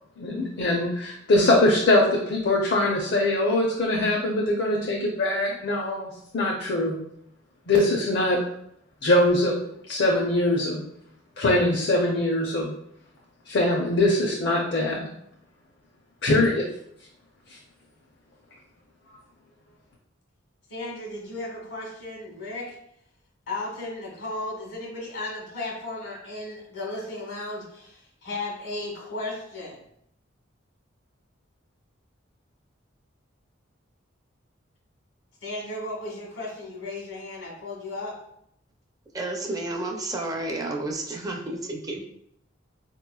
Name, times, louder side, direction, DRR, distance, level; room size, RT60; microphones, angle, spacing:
voice 1, 0.2-7.0 7.7-8.4 9.0-9.5 9.9-10.8 11.4-12.7 13.5-15.1 16.2-16.7, left 1 dB, 60° left, -2 dB, 0.5 m, -22 dB
voice 2, 20.7-22.8 23.5-29.8 35.4-38.1, left 2 dB, 80° left, -2 dB, 1.3 m, -35 dB
voice 3, 39.1-42.0, right 2 dB, 20° right, 1 dB, 0.4 m, -31 dB
4.2 x 2.9 x 2.3 m, 0.74 s
head